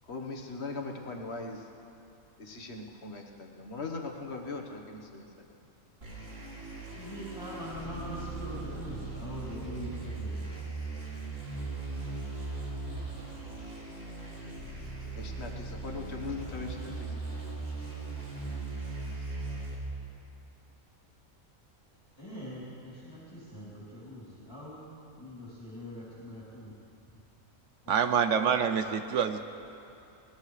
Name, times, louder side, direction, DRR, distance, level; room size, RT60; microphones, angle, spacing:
voice 1, 0.1-1.6 2.4-5.4 15.2-17.1, left 3 dB, 50° left, 2 dB, 1.5 m, -40 dB
sound 1, 6.0-19.7, right 3 dB, 45° right, 3.0 m, -39 dB
voice 2, 6.9-10.5 22.2-24.9 25.2-26.7 27.8-27.9, equal, 15° left, -9 dB, 3.2 m, -43 dB
voice 3, 27.9-29.4, right 7 dB, 65° right, 8 dB, 0.9 m, -26 dB
21.0 x 19.5 x 3.3 m, 2.8 s
omnidirectional pair, 1.5 m